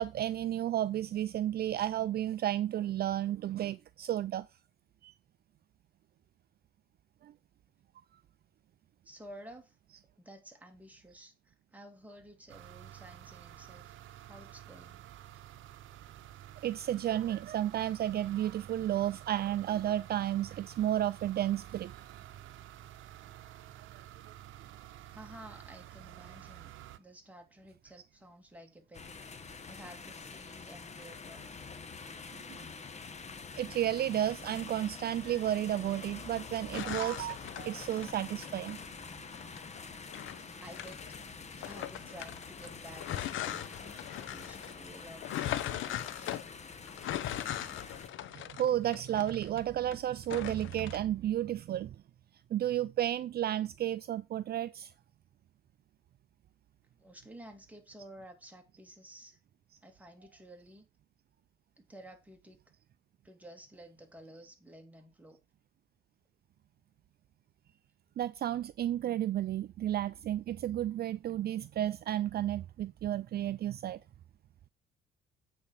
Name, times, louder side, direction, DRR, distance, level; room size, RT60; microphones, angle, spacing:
voice 1, 0.0-4.5 5.0-5.1 7.2-7.3 8.1-8.2 16.6-21.9 32.5-32.6 33.5-38.8 48.3-52.0 52.5-54.9 68.2-74.0, right 12 dB, 55° right, 0.4 m, -32 dB
voice 2, 9.0-9.8 10.2-15.0 25.1-26.7 27.0-31.5 40.6-41.0 41.6-46.4 57.0-59.4 59.8-60.8 61.8-62.6 63.2-65.4, right 1 dB, 5° right, 2.4 m, -52 dB
sound 1, 12.5-27.0, right 12 dB, 80° right, 0.7 m, -51 dB
sound 2, 28.9-48.1, left 4 dB, 35° left, 1.3 m, -46 dB
sound 3, 36.7-38.7 39.3-41.2 41.6-50.0 50.2-51.0, left 12 dB, 80° left, 0.9 m, -39 dB
8.6 x 4.4 x 7.3 m
cardioid pair, 90°, 20 cm